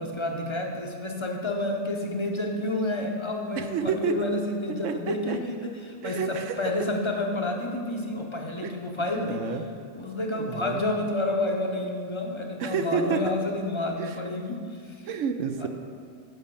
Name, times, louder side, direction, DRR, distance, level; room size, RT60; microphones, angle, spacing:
voice 1, 0.0-9.6 9.9-15.1 15.5-15.7, left 2 dB, 30° left, 2 dB, 0.7 m, -30 dB
voice 2, 3.6-4.1 4.8-5.4 6.0-6.5 8.6-8.7 9.3-9.6 10.3-10.8 12.6-13.2 14.0-14.1 15.1-15.7, right 7 dB, 80° right, 8 dB, 1.0 m, -29 dB
8.1 x 5.6 x 6.9 m, 2.2 s
omnidirectional pair, 1.3 m